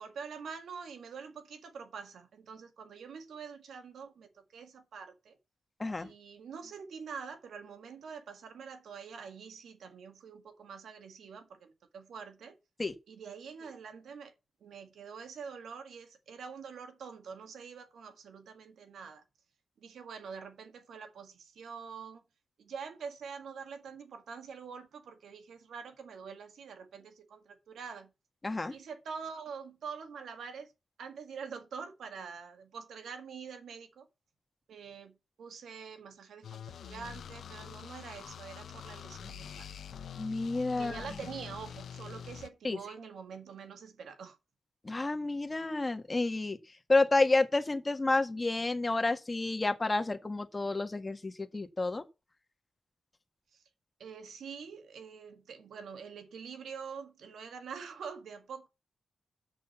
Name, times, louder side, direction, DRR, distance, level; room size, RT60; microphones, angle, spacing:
voice 1, 0.0-5.4 6.0-12.6 13.1-14.3 14.6-19.2 19.8-22.2 22.6-28.1 28.7-30.7 31.0-34.1 34.7-39.7 40.8-44.4 53.5-53.6 54.0-58.7, right 6 dB, 85° right, 1.8 m, -45 dB
voice 2, 28.4-28.7 40.2-41.0 42.6-42.8 44.8-46.6 46.9-52.0, left 2 dB, 25° left, 1.6 m, -30 dB
sound 1, 36.4-42.5, left 8 dB, 85° left, 0.8 m, -45 dB
7.5 x 6.4 x 7.2 m
cardioid pair, 80°, 0 cm